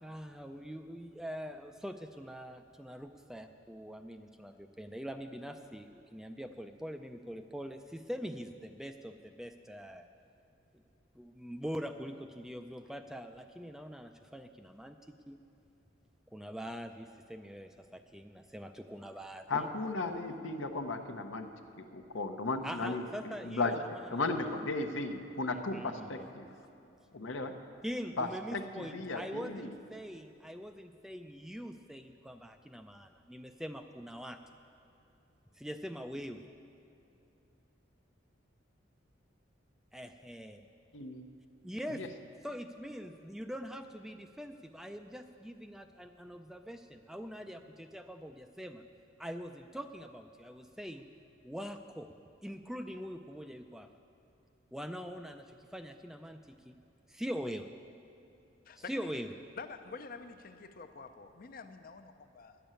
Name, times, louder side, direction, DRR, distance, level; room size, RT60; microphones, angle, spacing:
voice 1, 0.0-10.1 11.2-15.4 16.3-19.7 20.0-20.2 22.6-24.6 25.5-26.3 27.8-34.4 35.6-36.4 39.9-40.6 41.6-42.1 42.4-48.8 49.2-51.1 51.4-52.1 52.4-53.9 54.7-56.8 57.1-57.7 58.8-59.3, equal, ahead, 7 dB, 0.3 m, -43 dB
voice 2, 19.5-21.5 21.9-26.5 27.1-27.5 28.2-29.7 40.9-41.3 41.9-42.1, left 3 dB, 80° left, 6 dB, 0.8 m, -36 dB
voice 3, 58.7-59.1 59.6-62.6, left 4 dB, 45° left, 9 dB, 0.5 m, -47 dB
11.0 x 7.0 x 8.9 m, 2.8 s
head